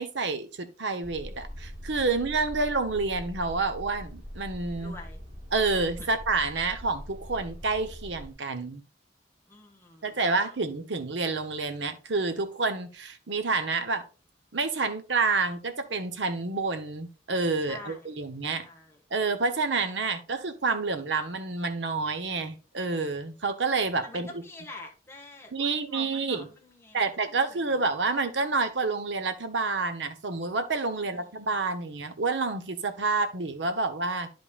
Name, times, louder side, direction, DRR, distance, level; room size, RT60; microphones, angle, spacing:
voice 1, 0.0-4.9 5.5-8.8 10.0-14.1 14.5-18.7 19.1-24.3 25.5-26.5 26.9-34.3, right 3 dB, 75° right, 1.0 m, -28 dB
sound 1, 1.0-8.3, equal, 35° right, 2.7 m, -42 dB
voice 2, 4.7-5.2 6.0-6.1 9.5-10.5 17.6-18.2 18.5-19.0 24.0-27.9 30.9-31.6, left 2 dB, 15° left, 1.5 m, -47 dB
10.5 x 5.2 x 2.4 m
head